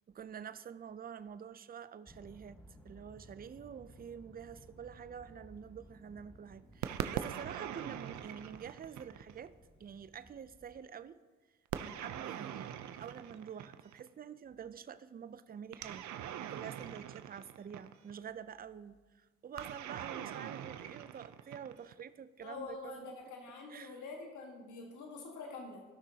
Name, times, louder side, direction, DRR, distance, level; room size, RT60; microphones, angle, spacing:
voice 1, 0.1-2.6 2.8-9.5 9.8-11.2 11.8-16.0 16.5-23.1 23.7-24.0, right 8 dB, 30° right, 0.5 m, -47 dB
sound 1, 2.1-10.8, equal, 5° left, 1.3 m, -59 dB
sound 2, 6.8-9.5 11.7-14.1 15.7-18.2 19.6-22.0, right 10 dB, 65° right, 0.7 m, -42 dB
voice 2, 22.4-25.8, left 4 dB, 75° left, 1.6 m, -46 dB
16.0 x 6.0 x 2.9 m
supercardioid pair, 70°, 31 cm